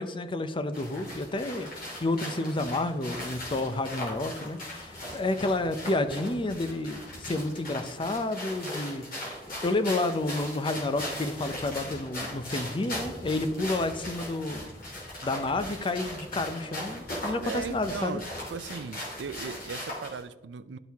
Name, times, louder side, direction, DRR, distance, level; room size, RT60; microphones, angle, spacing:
voice 1, 0.0-1.7 2.0-14.6 15.2-18.2, left 2 dB, 30° left, 0.5 m, -30 dB
sound 1, 0.7-20.2, left 1 dB, 55° left, 2.9 m, -39 dB
voice 2, 17.4-18.2 18.5-20.8, right 5 dB, 75° right, 0.4 m, -37 dB
12.0 x 4.5 x 3.5 m
head